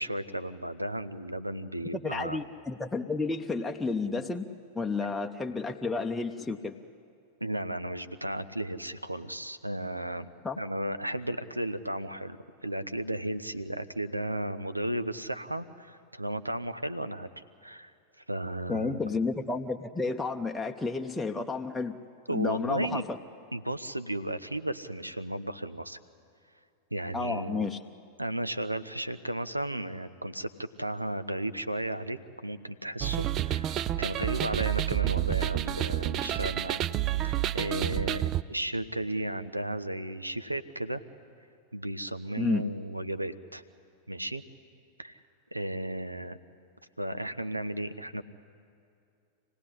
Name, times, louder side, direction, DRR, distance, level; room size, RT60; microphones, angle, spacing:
voice 1, 0.0-2.4 7.4-10.3 10.6-12.4 12.6-17.9 18.3-19.0 22.3-23.1 23.5-26.0 26.9-27.7 28.2-36.8 37.2-41.0 41.7-43.6 44.1-44.4 45.0-45.2 45.5-46.4 47.0-48.2, right 1 dB, 85° right, 13 dB, 0.8 m, -34 dB
voice 2, 1.9-4.5 4.7-6.8 10.4-10.6 18.7-22.0 22.3-23.0 27.1-27.8 42.4-42.7, left 4 dB, 10° left, 2 dB, 0.8 m, -31 dB
sound 1, 33.0-38.4, right 13 dB, 35° right, 0.5 m, -29 dB
27.0 x 17.5 x 10.0 m, 2.5 s
figure-of-eight pair, 90°, 0 cm